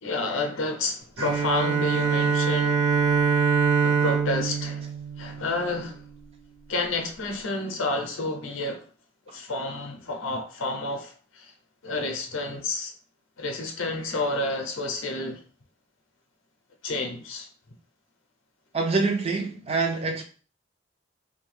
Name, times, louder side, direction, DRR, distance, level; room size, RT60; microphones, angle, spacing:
voice 1, 0.0-2.9 3.8-4.9 5.2-6.0 6.7-8.8 9.3-11.5 11.8-12.9 13.4-15.4 16.8-17.5, left 2 dB, 70° left, 0.6 m, -30 dB
Bowed string instrument, 1.2-5.9, right 6 dB, 55° right, 1.0 m, -24 dB
voice 2, 18.7-20.2, right 3 dB, 30° right, 0.5 m, -25 dB
2.7 x 2.2 x 3.1 m
head